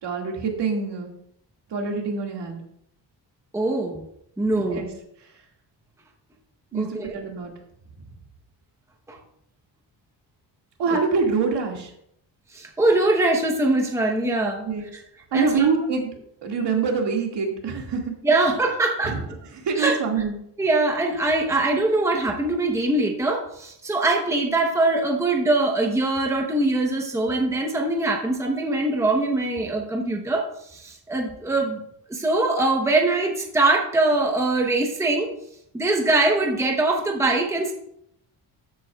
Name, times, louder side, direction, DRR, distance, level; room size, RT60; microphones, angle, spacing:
voice 1, 0.0-1.1 1.7-2.6 4.5-4.9 6.7-7.5 10.8-11.9 14.6-14.9 15.3-16.1 16.4-18.2 19.0-19.2 19.5-20.4, right 5 dB, 70° right, 1 dB, 2.1 m, -25 dB
voice 2, 3.5-4.0 4.4-4.9 6.7-7.1 9.1-9.2 10.9-11.0 12.5-14.7 15.3-15.7 18.2-19.2 19.8-19.9 20.6-31.8 32.1-35.3 35.7-37.7, right 2 dB, 5° right, 1 dB, 0.9 m, -22 dB
13.0 x 8.3 x 2.4 m, 0.74 s
wide cardioid pair, 175°, 43 cm